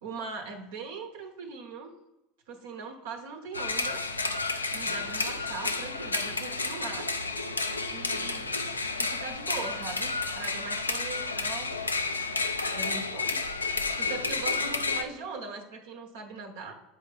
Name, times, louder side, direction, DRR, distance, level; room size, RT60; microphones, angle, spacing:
voice 1, 0.0-1.9 2.5-4.0 4.7-7.1 7.9-8.6 8.9-11.7 12.7-13.4 13.9-16.8, right 4 dB, 65° right, 4 dB, 0.9 m, -40 dB
sound 1, 3.5-15.0, left 3 dB, 90° left, 0.4 m, -31 dB
7.9 x 4.5 x 3.9 m, 0.95 s
figure-of-eight pair, 75°, 0 cm